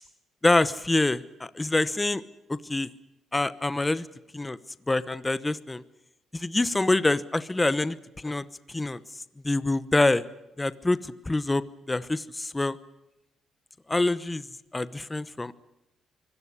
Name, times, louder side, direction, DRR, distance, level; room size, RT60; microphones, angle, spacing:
voice 1, 0.4-1.2 1.6-2.2 2.7-2.9 3.3-4.1 4.3-4.6 4.9-5.8 6.3-8.0 8.2-8.4 8.7-9.0 9.4-10.2 10.6-11.0 11.3-11.6 11.9-12.7 13.9-14.4 14.7-15.5, left 2 dB, 15° left, 15 dB, 1.0 m, -25 dB
24.5 x 17.0 x 9.9 m, 0.89 s
cardioid pair, 90°, 0 cm